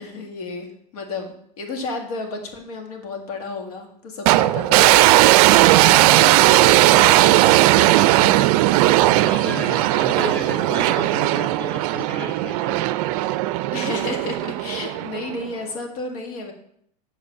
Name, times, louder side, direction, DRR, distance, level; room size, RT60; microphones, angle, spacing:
voice 1, 0.0-5.1 5.4-7.6 7.9-8.5 13.7-16.5, left 3 dB, 70° left, 3 dB, 1.9 m, -32 dB
sound 1, 4.3-15.5, right 16 dB, 65° right, 0.4 m, -17 dB
voice 2, 9.0-12.9, left 2 dB, 10° left, -1 dB, 2.2 m, -33 dB
6.5 x 5.2 x 5.6 m, 0.66 s
hypercardioid pair, 115°, 20 cm